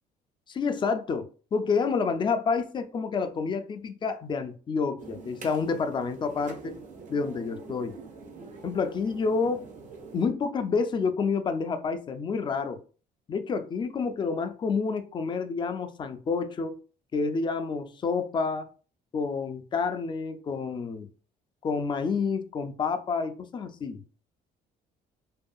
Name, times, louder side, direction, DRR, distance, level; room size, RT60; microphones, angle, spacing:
voice 1, 0.5-6.8 7.1-8.0 8.6-9.6 10.1-12.8 13.3-16.8 17.1-18.7 19.1-21.1 21.6-24.0, left 5 dB, 30° left, 0.4 m, -29 dB
sound 1, 5.0-10.3, right 4 dB, 45° right, 0.7 m, -45 dB
2.6 x 2.3 x 2.3 m
cardioid pair, 110°, 17 cm